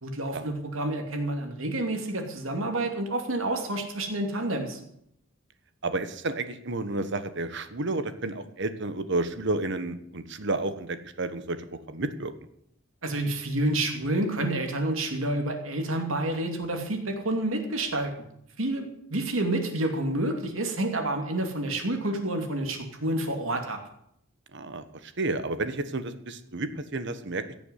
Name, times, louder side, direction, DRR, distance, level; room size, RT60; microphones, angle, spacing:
voice 1, 0.0-4.8 13.0-18.1 18.6-23.8, right 1 dB, 80° right, 4 dB, 2.7 m, -29 dB
voice 2, 5.8-12.3 24.5-27.5, right 2 dB, 60° right, 11 dB, 1.3 m, -31 dB
16.5 x 7.0 x 8.2 m, 0.71 s
head